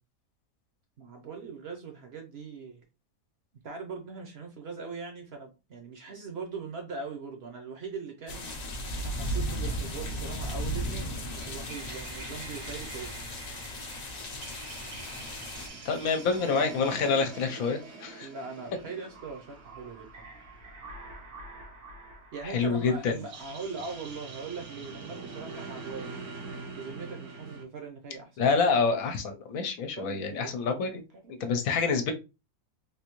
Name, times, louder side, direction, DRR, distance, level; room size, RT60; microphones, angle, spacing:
voice 1, 1.0-2.8 3.6-8.5 9.0-13.3 18.2-20.3 22.3-26.3 26.7-28.5 30.0-30.9 31.2-32.1, right 5 dB, 55° right, 3 dB, 0.8 m, -41 dB
sound 1, 8.3-15.7, equal, 50° left, 0.5 m, -35 dB
sound 2, 10.8-27.6, right 3 dB, 90° right, 1.4 m, -45 dB
voice 2, 15.8-18.3 22.4-23.2 28.4-31.0 31.4-32.1, left 5 dB, 75° left, 6 dB, 1.0 m, -27 dB
3.5 x 2.6 x 2.9 m, 0.28 s
omnidirectional pair, 1.5 m